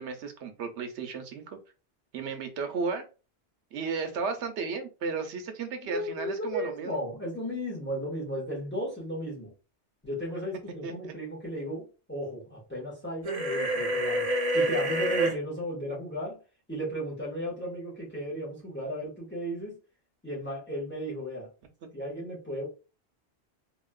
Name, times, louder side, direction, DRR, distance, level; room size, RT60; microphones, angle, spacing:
voice 1, 0.0-1.6 2.1-3.0 3.7-7.0 10.8-11.1, right 4 dB, 85° right, 1.0 m, -34 dB
voice 2, 5.8-9.5 10.0-14.3 14.5-16.4 16.7-19.8 20.2-21.5 21.9-22.7, equal, 10° left, 1.5 m, -35 dB
sound 1, 13.2-15.3, right 1 dB, 40° right, 0.8 m, -27 dB
3.0 x 2.9 x 2.3 m
omnidirectional pair, 1.1 m